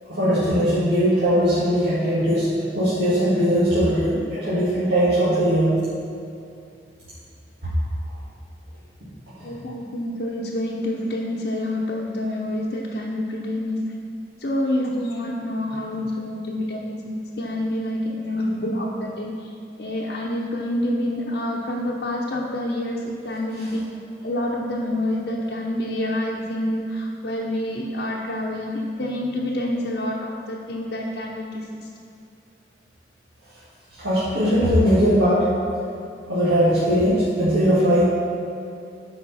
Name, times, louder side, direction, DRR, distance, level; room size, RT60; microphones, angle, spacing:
voice 1, 0.1-2.5 2.7-5.7 9.4-9.5 23.6-23.7 34.0-35.5 36.3-38.0, equal, 85° right, -12 dB, 2.0 m, -20 dB
voice 2, 9.4-13.8 14.4-19.3 19.8-23.0 23.2-23.8 24.2-31.6, left 1 dB, 65° left, -4 dB, 0.8 m, -27 dB
12.5 x 5.1 x 4.2 m, 2.5 s
head